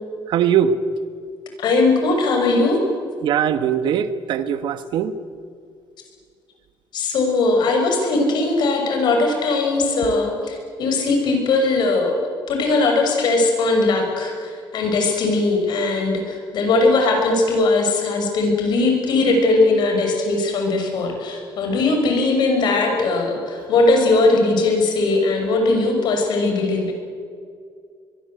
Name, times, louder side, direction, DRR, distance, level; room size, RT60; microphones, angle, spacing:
voice 1, 0.3-0.7 3.2-5.1, right 9 dB, 65° right, 12 dB, 1.3 m, -20 dB
voice 2, 1.6-2.8 6.9-12.2 12.5-26.9, left 3 dB, 55° left, 3 dB, 6.2 m, -19 dB
23.5 x 23.0 x 8.0 m, 2.2 s
cardioid pair, 160°, 9 cm